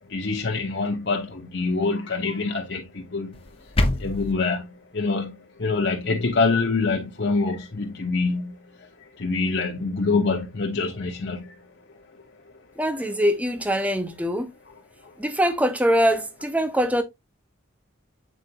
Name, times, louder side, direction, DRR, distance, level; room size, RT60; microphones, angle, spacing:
voice 1, 0.1-3.4 4.0-8.6 9.2-11.5, left 3 dB, 55° left, 1.1 m, -25 dB
sound 1, 3.3-4.3, left 1 dB, 30° left, 0.8 m, -25 dB
voice 2, 12.8-14.5 15.2-17.0, equal, 5° right, 0.8 m, -23 dB
8.2 x 4.8 x 2.9 m
head